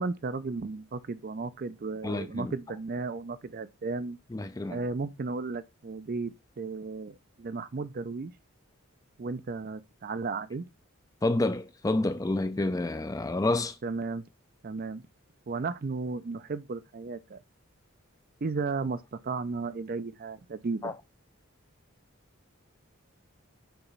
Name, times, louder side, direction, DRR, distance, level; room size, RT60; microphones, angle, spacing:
voice 1, 0.0-4.2 4.7-8.3 9.2-10.7 13.8-14.3 14.6-15.0 15.5-17.4 18.4-20.9, right 4 dB, 45° right, 0.4 m, -34 dB
voice 2, 2.0-2.5 4.3-4.8 11.2-13.8 20.8-20.9, left 2 dB, 15° left, 0.4 m, -29 dB
6.8 x 3.0 x 5.3 m
head